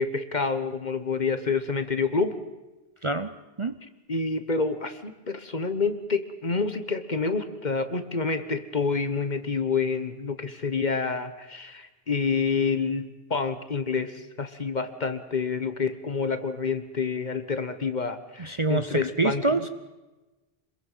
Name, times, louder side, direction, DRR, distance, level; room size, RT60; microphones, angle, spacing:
voice 1, 0.0-2.4 4.1-19.7, left 4 dB, 45° left, 10 dB, 1.4 m, -28 dB
voice 2, 3.0-3.8 18.4-19.7, right 3 dB, 30° right, 9 dB, 0.7 m, -26 dB
26.0 x 22.0 x 5.7 m, 1.1 s
omnidirectional pair, 1.1 m